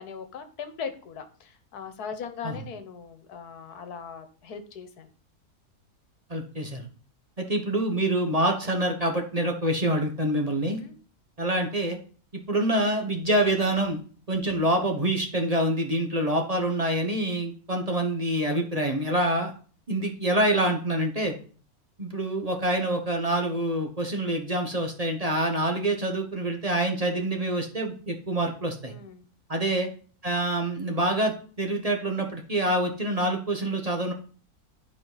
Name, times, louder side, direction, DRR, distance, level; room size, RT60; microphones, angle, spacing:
voice 1, 0.0-5.1 10.6-11.0 28.9-29.3, left 6 dB, 85° left, 8 dB, 1.6 m, -39 dB
voice 2, 6.3-6.9 7.4-10.8 11.4-12.0 12.5-14.0 14.3-19.5 19.9-21.3 22.0-28.9 29.5-29.9 30.2-34.1, right 1 dB, 25° right, 3 dB, 1.2 m, -26 dB
11.5 x 5.0 x 4.0 m, 0.41 s
omnidirectional pair, 1.6 m